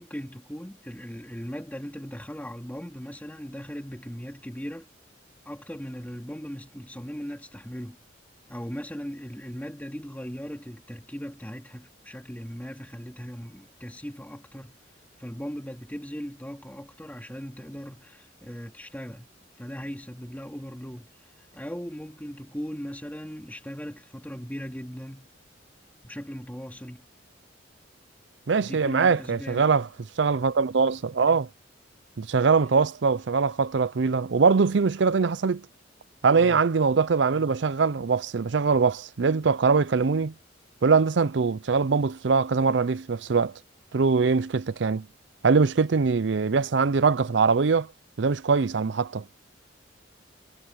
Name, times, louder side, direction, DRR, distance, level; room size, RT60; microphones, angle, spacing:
voice 1, 0.0-4.9 5.5-8.0 8.5-14.8 15.2-19.3 19.6-25.3 26.0-27.1 28.5-29.7 36.4-36.6, equal, 10° left, 2.5 m, -38 dB
voice 2, 28.5-29.9 30.2-31.5 32.2-35.6 36.2-40.3 40.8-43.5 43.9-45.1 45.4-47.9 48.2-49.2, right 5 dB, 70° right, 0.5 m, -22 dB
head